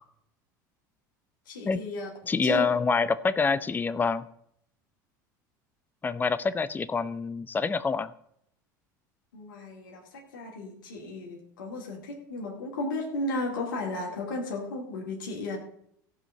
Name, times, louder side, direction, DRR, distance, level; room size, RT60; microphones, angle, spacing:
voice 1, 1.5-2.1 2.4-2.7 9.3-15.6, left 2 dB, 85° left, -1 dB, 2.4 m, -34 dB
voice 2, 2.3-4.2 6.0-8.1, left 4 dB, 20° left, 15 dB, 0.6 m, -26 dB
15.5 x 5.4 x 6.5 m, 0.72 s
hypercardioid pair, 90°, 10 cm